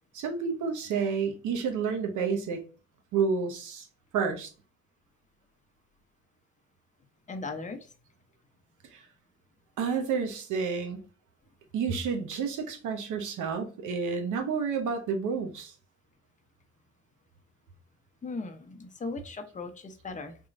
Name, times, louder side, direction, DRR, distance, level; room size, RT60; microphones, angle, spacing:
voice 1, 0.1-2.6 3.1-3.8 4.1-4.5 9.8-11.0 11.7-15.7, right 5 dB, 85° right, 0.9 m, -30 dB
voice 2, 7.3-7.9 18.2-20.4, left 3 dB, 25° left, 0.7 m, -38 dB
3.7 x 3.1 x 2.5 m
cardioid pair, 90°, 30 cm